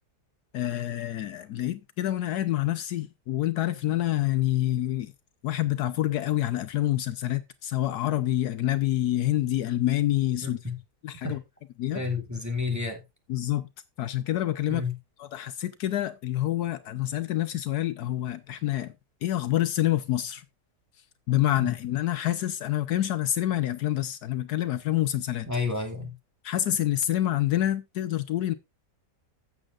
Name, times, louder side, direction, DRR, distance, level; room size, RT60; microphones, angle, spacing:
voice 1, 0.5-5.1 5.4-10.6 11.0-11.4 11.8-12.0 13.3-13.7 14.0-14.8 15.2-18.9 19.2-20.4 21.3-25.5 26.4-28.5, left 13 dB, 75° left, 1.2 m, -27 dB
voice 2, 10.4-10.8 11.2-11.4 11.9-13.0 14.7-15.0 21.6-21.7 25.5-26.1, left 4 dB, 10° right, 2.0 m, -30 dB
15.0 x 7.7 x 2.4 m
omnidirectional pair, 1.8 m